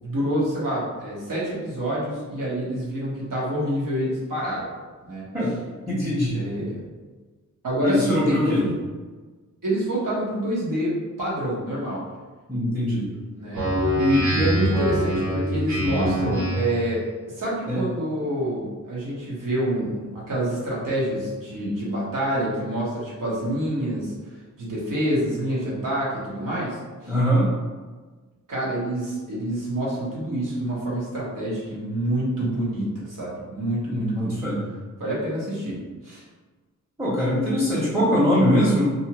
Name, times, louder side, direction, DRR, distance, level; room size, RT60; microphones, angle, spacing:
voice 1, 0.0-4.7 5.0-5.2 6.3-6.8 7.6-8.7 9.6-10.9 11.2-12.0 13.1-13.6 13.9-17.1 17.3-24.1 24.6-27.1 28.5-34.4 35.0-35.8 36.0-36.2, right 1 dB, 90° right, -6 dB, 1.1 m, -27 dB
voice 2, 5.9-6.4 7.8-8.6 12.5-13.1 17.7-17.8 27.1-27.5 33.9-34.6 37.0-38.9, equal, 5° right, -9 dB, 0.8 m, -22 dB
Speech synthesizer, 13.5-16.9, equal, 65° right, 0.7 m, -24 dB
2.6 x 2.4 x 2.9 m, 1.4 s
wide cardioid pair, 85°, 31 cm